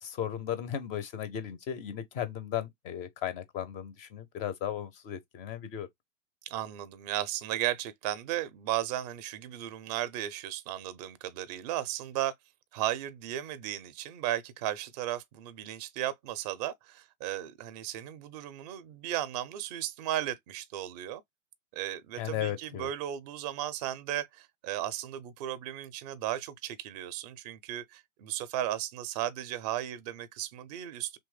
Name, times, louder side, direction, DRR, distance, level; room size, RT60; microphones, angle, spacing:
voice 1, 0.0-5.9 22.2-22.9, left 10 dB, 20° left, 0.4 m, -36 dB
voice 2, 6.5-12.3 12.7-21.2 21.7-31.2, right 12 dB, 35° right, 0.5 m, -35 dB
3.0 x 2.1 x 3.2 m
hypercardioid pair, 110°, 37 cm